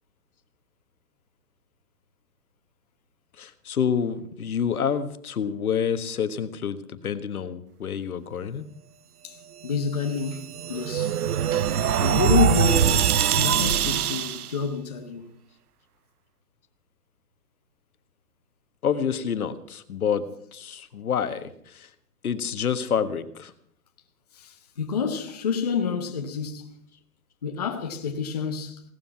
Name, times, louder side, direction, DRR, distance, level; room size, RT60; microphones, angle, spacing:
voice 1, 3.4-6.8 7.0-8.6 18.8-20.2 20.5-21.9 22.2-23.5, left 7 dB, 65° left, 1.5 m, -28 dB
voice 2, 9.2-11.2 12.0-15.3 24.3-26.8 27.4-28.9, left 6 dB, 25° left, 0.9 m, -28 dB
sound 1, 10.0-14.5, right 9 dB, 70° right, 0.7 m, -23 dB
17.5 x 13.0 x 6.0 m
hypercardioid pair, 180°, 47 cm